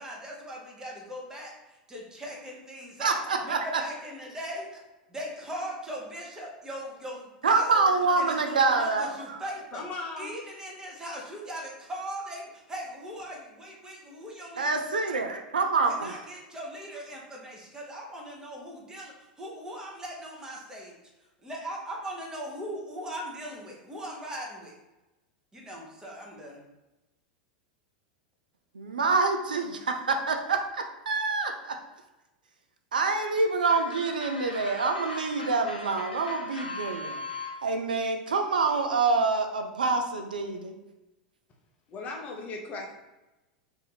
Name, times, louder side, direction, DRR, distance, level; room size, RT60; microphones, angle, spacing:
voice 1, 0.0-1.5 1.9-4.8 5.1-7.9 8.2-9.8 10.2-14.8 15.9-20.9 21.4-24.7 25.5-26.6, equal, 15° right, -2 dB, 1.0 m, -39 dB
voice 2, 3.0-3.7 7.4-9.1 14.6-16.1 28.8-31.8 32.9-37.2 37.6-40.7, right 4 dB, 75° right, 5 dB, 0.4 m, -26 dB
voice 3, 9.7-10.4 41.9-42.9, left 3 dB, 30° left, 1 dB, 0.6 m, -37 dB
sound 1, 33.7-37.6, left 2 dB, 85° left, 0.6 m, -38 dB
2.7 x 2.6 x 3.8 m, 1.0 s
figure-of-eight pair, 85°, 5 cm